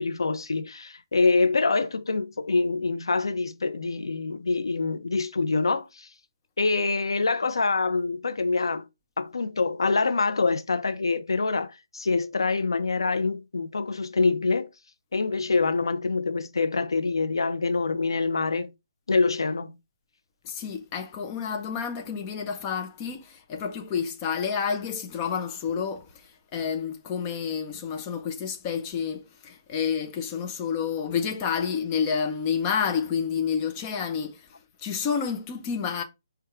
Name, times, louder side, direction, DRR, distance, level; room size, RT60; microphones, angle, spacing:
voice 1, 0.0-6.1 6.6-8.9 9.2-14.7 15.1-18.7 19.1-19.8, left 3 dB, 90° left, 0.6 m, -25 dB
voice 2, 20.4-26.1 26.5-34.4 34.8-36.0, left 6 dB, 15° left, 0.5 m, -29 dB
4.5 x 2.3 x 4.8 m
hypercardioid pair, 170°, 2 cm